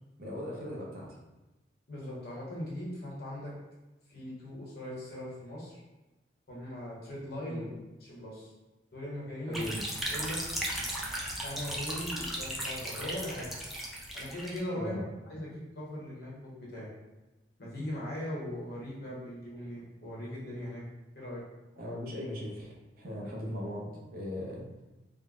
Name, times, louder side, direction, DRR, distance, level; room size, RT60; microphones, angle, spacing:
voice 1, 0.2-1.1 7.5-7.7 9.5-9.8 14.7-15.1 21.8-24.8, left 1 dB, 55° right, -4 dB, 0.7 m, -39 dB
voice 2, 1.9-3.5 4.1-5.8 6.5-7.7 8.0-8.5 8.9-9.7 10.1-10.4 11.4-13.5 14.1-14.9 15.3-16.9 17.6-20.8 21.2-21.4, left 1 dB, 60° left, -5 dB, 1.0 m, -39 dB
sound 1, 9.5-14.6, equal, ahead, 0.3 m, -36 dB
3.6 x 2.1 x 2.3 m, 1.1 s
head